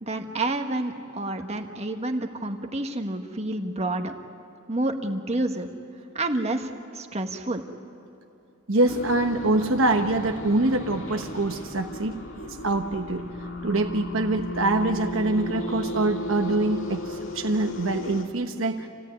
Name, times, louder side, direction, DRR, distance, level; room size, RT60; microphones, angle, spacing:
voice 1, 0.0-4.2 4.7-5.7 6.1-7.6, right 2 dB, 30° right, 5 dB, 1.5 m, -29 dB
voice 2, 8.7-13.2 13.6-18.9, right 2 dB, 75° right, 5 dB, 1.1 m, -25 dB
sound 1, 8.9-18.2, left 1 dB, 70° left, 2.0 m, -35 dB
28.0 x 17.0 x 9.6 m, 2.9 s
head